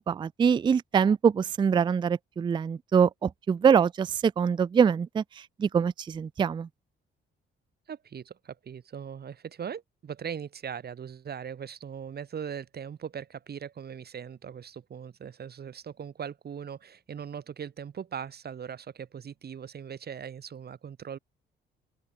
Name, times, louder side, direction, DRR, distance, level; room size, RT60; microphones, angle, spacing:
voice 1, 0.1-5.2 5.6-6.7, right 7 dB, 25° right, 0.3 m, -24 dB
voice 2, 7.9-21.2, right 8 dB, 55° right, 7.0 m, -40 dB
open air
cardioid pair, 90°, 20 cm